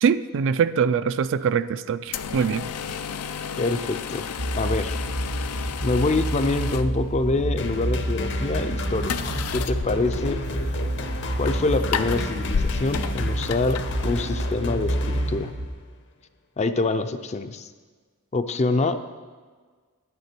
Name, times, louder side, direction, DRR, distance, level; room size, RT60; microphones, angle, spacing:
voice 1, 0.0-2.7, right 7 dB, 60° right, 13 dB, 0.3 m, -23 dB
sound 1, 2.1-14.6, left 6 dB, 80° left, 0.5 m, -33 dB
voice 2, 3.6-4.3 4.5-5.0 5.8-9.1 9.5-10.4 11.4-15.5 16.6-17.7 18.3-19.0, left 3 dB, 30° left, 10 dB, 0.4 m, -25 dB
sound 2, 4.4-15.7, right 1 dB, 80° right, 1.1 m, -29 dB
sound 3, 7.6-15.9, left 2 dB, 55° left, 0.8 m, -34 dB
9.8 x 9.6 x 4.4 m, 1.5 s
head